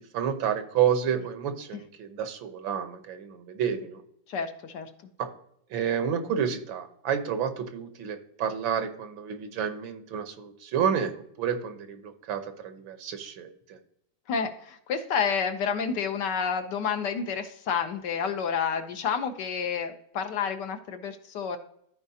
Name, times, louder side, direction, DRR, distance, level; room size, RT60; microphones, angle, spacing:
voice 1, 0.1-4.0 5.2-5.3 5.7-11.1 11.4-13.8, right 8 dB, 80° right, 8 dB, 1.7 m, -30 dB
voice 2, 4.3-4.9 14.3-21.6, left 6 dB, 65° left, 8 dB, 1.3 m, -29 dB
14.0 x 4.7 x 2.7 m, 0.72 s
omnidirectional pair, 2.1 m